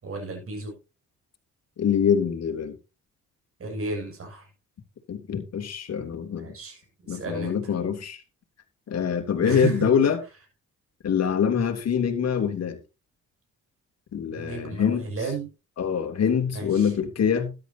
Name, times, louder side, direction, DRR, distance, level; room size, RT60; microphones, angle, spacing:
voice 1, 0.0-0.8 3.6-4.5 6.4-6.8 7.1-7.6 9.4-9.9 14.3-15.5 16.5-16.9, right 4 dB, 45° right, 7.2 m, -33 dB
voice 2, 1.8-2.7 5.1-6.5 7.1-8.2 8.9-10.2 11.0-12.8 14.1-15.0 15.8-17.5, left 7 dB, 60° left, 3.2 m, -24 dB
13.0 x 11.5 x 2.9 m
cardioid pair, 90°, 30 cm